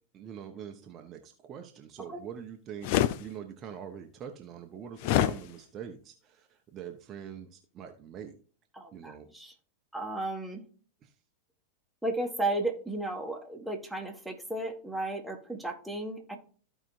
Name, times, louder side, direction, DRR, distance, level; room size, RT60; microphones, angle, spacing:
voice 1, 0.1-2.9 3.2-8.3 8.9-9.3 11.0-11.1, right 8 dB, 30° right, 4 dB, 0.9 m, -44 dB
sound 1, 2.8-3.2 5.0-5.4, left 12 dB, 45° left, 0.5 m, -24 dB
voice 2, 8.7-9.5 9.9-10.6 12.0-16.4, right 2 dB, ahead, 1 dB, 1.6 m, -34 dB
14.5 x 5.0 x 2.6 m, 0.43 s
figure-of-eight pair, 90°, 0 cm